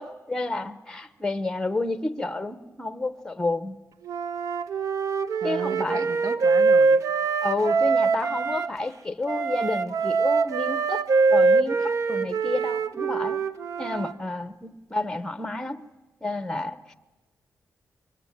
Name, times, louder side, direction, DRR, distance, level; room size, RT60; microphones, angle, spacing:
voice 1, 0.0-3.8 5.4-6.1 7.4-13.4 13.8-15.8 16.2-16.9, left 2 dB, 10° left, 13 dB, 0.8 m, -30 dB
Wind instrument woodwind instrument, 4.1-8.7 9.3-14.1, right 4 dB, 60° right, 0.9 m, -23 dB
voice 2, 5.4-7.0, right 4 dB, 85° right, 10 dB, 1.4 m, -35 dB
24.5 x 22.5 x 9.1 m, 1.1 s
wide cardioid pair, 175°, 6 cm